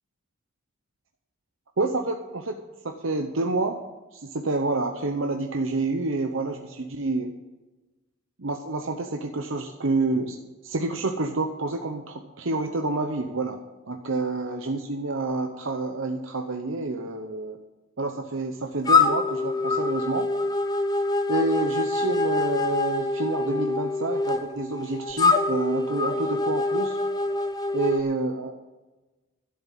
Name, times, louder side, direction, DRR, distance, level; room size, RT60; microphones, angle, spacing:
voice 1, 1.8-2.6 2.8-3.8 4.1-7.3 8.4-10.4 10.6-13.6 13.9-17.6 18.0-20.3 21.3-27.0 27.7-28.6, right 2 dB, 70° right, 5 dB, 0.9 m, -28 dB
sound 1, 18.8-28.0, left 3 dB, 20° left, 0.6 m, -25 dB
12.0 x 7.2 x 8.4 m, 1.1 s
head